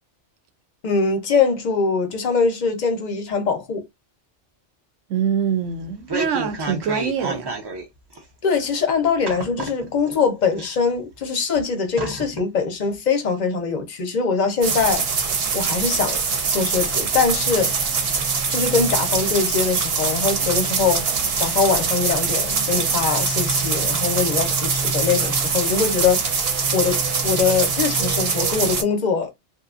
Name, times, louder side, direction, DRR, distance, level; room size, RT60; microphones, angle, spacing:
voice 1, 0.8-3.8 8.4-15.1 15.5-16.2 16.5-17.7 18.5-21.0 21.4-26.2 26.7-29.3, left 5 dB, 50° left, 0.6 m, -22 dB
voice 2, 5.1-7.5, right 7 dB, 85° right, 0.9 m, -24 dB
sound 1, 5.7-7.8 8.2-8.3 9.2-10.2 10.5-11.2 11.5-11.6 12.0-12.4 12.8-12.9, right 2 dB, 40° right, 0.4 m, -30 dB
sound 2, 14.6-28.8, right 5 dB, 60° right, 0.9 m, -23 dB
2.8 x 2.2 x 2.4 m
omnidirectional pair, 1.2 m